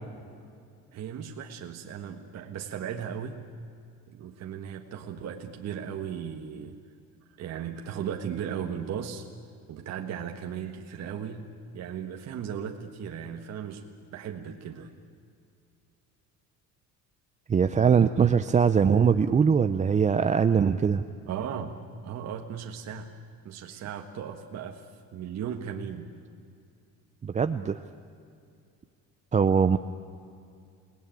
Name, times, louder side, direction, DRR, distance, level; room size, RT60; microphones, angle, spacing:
voice 1, 0.9-3.4 4.1-6.8 7.4-9.3 9.7-11.5 11.7-14.9 21.3-23.1 23.4-26.1, right 8 dB, 50° right, 3 dB, 1.5 m, -36 dB
voice 2, 17.5-21.0 27.2-27.8 29.3-29.8, right 6 dB, 20° right, 9 dB, 0.6 m, -22 dB
29.0 x 19.0 x 9.1 m, 2.4 s
cardioid pair, 140°, 34 cm